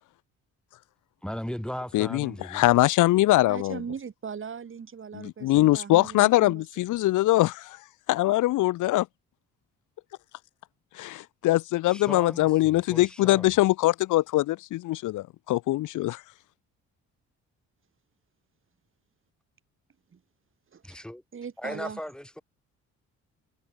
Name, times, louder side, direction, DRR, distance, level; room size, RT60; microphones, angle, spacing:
voice 1, 1.2-2.7 11.9-13.5 20.8-21.2 21.6-22.4, equal, 5° left, 7.2 m, -37 dB
voice 2, 1.9-3.8 5.1-7.8 8.1-9.1 10.9-16.2, left 17 dB, 80° left, 0.8 m, -23 dB
voice 3, 3.5-6.6 20.1-20.2 20.7-21.0 21.3-22.0, right 6 dB, 40° right, 3.5 m, -39 dB
cardioid pair, 90°, 30 cm